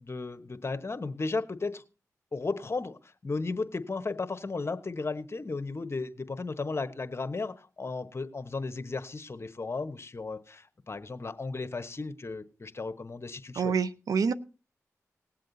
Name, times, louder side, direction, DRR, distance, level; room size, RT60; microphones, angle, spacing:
voice 1, 0.0-1.8 2.3-13.7, left 3 dB, 45° left, 11 dB, 1.2 m, -35 dB
voice 2, 13.6-14.3, right 6 dB, 80° right, 15 dB, 0.7 m, -27 dB
19.0 x 7.7 x 4.0 m, 0.33 s
cardioid pair, 45°, 6 cm